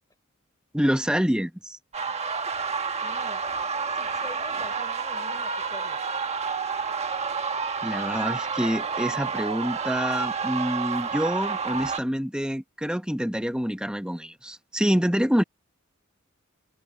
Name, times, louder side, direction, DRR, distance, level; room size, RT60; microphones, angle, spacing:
voice 1, 0.7-1.8 7.8-15.4, equal, 5° right, 1.4 m, -26 dB
sound 1, 1.9-12.0, right 5 dB, 30° right, 1.3 m, -29 dB
voice 2, 3.0-3.4 3.9-6.0, left 1 dB, 15° left, 5.7 m, -45 dB
head